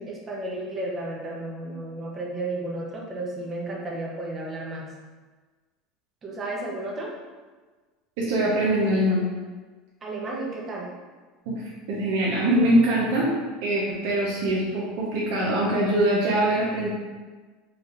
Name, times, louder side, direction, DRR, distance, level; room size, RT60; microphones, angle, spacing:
voice 1, 0.0-4.9 6.2-7.1 10.0-10.9, right 2 dB, 25° right, -2 dB, 0.8 m, -33 dB
voice 2, 8.2-9.2 11.5-11.6 11.9-13.3 13.6-16.9, right 1 dB, 75° right, -6 dB, 0.9 m, -23 dB
4.2 x 3.4 x 2.5 m, 1.4 s
supercardioid pair, 145°, 0 cm